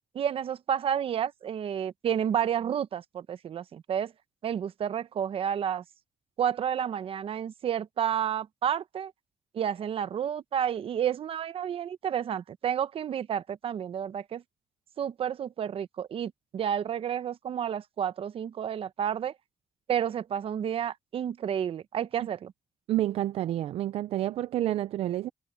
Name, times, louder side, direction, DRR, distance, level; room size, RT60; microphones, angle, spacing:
voice 1, 0.1-4.1 4.4-5.8 6.4-9.1 9.5-14.4 15.0-19.3 19.9-22.5, right 9 dB, 70° right, 0.9 m, -30 dB
voice 2, 22.9-25.3, right 13 dB, 85° right, 0.4 m, -29 dB
cardioid pair, 70°, 10 cm